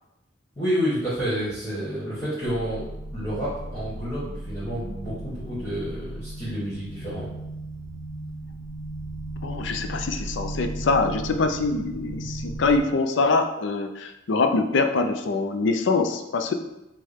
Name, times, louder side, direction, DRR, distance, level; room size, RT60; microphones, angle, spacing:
voice 1, 0.6-7.3, equal, 15° left, -12 dB, 1.5 m, -29 dB
sound 1, 2.4-12.8, right 1 dB, 40° left, 1.0 m, -36 dB
voice 2, 9.4-16.5, left 3 dB, 65° left, 7 dB, 0.4 m, -24 dB
6.4 x 2.2 x 3.5 m, 0.90 s
head